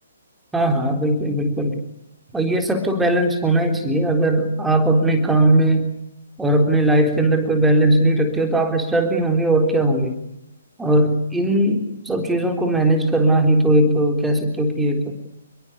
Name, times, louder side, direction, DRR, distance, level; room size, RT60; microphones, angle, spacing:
voice 1, 0.5-1.8 2.3-5.9 6.4-10.1 10.8-15.1, right 1 dB, 5° right, 4 dB, 3.7 m, -19 dB
29.0 x 22.5 x 8.4 m, 0.83 s
figure-of-eight pair, 130°, 0 cm